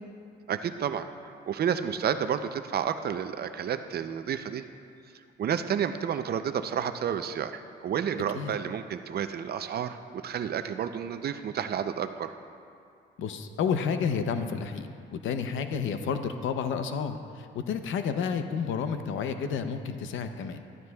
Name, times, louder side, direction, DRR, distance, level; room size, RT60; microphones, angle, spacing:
voice 1, 0.5-1.1 1.5-4.6 5.4-12.3, right 8 dB, 55° right, 10 dB, 0.5 m, -30 dB
voice 2, 13.2-20.6, left 6 dB, 75° left, 8 dB, 0.7 m, -30 dB
13.5 x 12.0 x 2.3 m, 2.4 s
cardioid pair, 90°, 20 cm